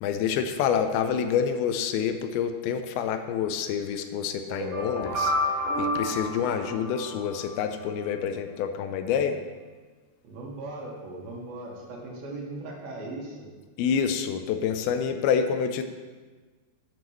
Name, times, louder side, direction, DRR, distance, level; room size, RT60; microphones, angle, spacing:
voice 1, 0.0-5.3 5.8-9.4 13.8-15.8, left 7 dB, 85° left, 8 dB, 2.5 m, -27 dB
sound 1, 4.5-7.5, equal, 60° right, 3.6 m, -30 dB
voice 2, 10.2-13.5, right 2 dB, 75° right, -2 dB, 3.5 m, -38 dB
12.0 x 8.9 x 3.1 m, 1.4 s
omnidirectional pair, 4.4 m